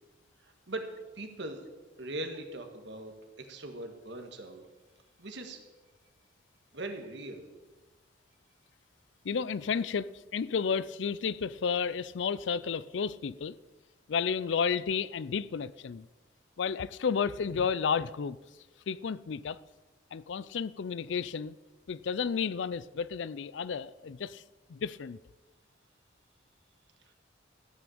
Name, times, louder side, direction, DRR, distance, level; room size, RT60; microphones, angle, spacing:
voice 1, 0.4-0.9 1.1-1.6 2.0-3.1 3.4-4.6 5.2-5.6 6.7-7.4 27.1-27.2, right 2 dB, 70° right, 1.7 m, -40 dB
voice 2, 9.2-13.6 14.1-16.1 16.6-18.4 18.9-19.6 20.1-21.6 21.9-24.4 24.7-25.2, left 6 dB, 80° left, 0.4 m, -32 dB
13.5 x 6.1 x 8.5 m
head